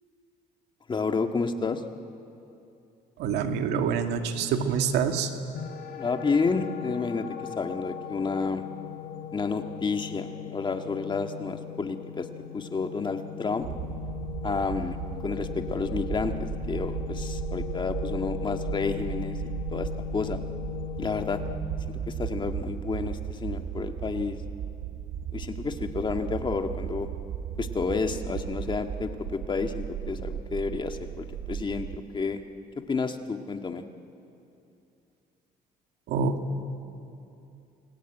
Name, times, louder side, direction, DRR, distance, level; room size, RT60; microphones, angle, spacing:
voice 1, 0.9-1.8 5.9-7.3 7.6-8.6 9.3-12.3 12.5-13.7 14.4-15.0 15.2-19.3 19.7-20.4 21.0-21.4 21.9-24.4 25.3-27.1 27.6-32.4 32.8-33.8, left 4 dB, 30° left, 6 dB, 1.7 m, -30 dB
voice 2, 3.2-5.3 36.1-36.4, right 6 dB, 85° right, 6 dB, 2.1 m, -26 dB
sound 1, 5.5-21.5, left 11 dB, 65° left, 2.3 m, -38 dB
sound 2, 13.6-32.0, right 9 dB, 70° right, 1.1 m, -36 dB
29.0 x 22.0 x 9.1 m, 2.7 s
cardioid pair, 110°, 17 cm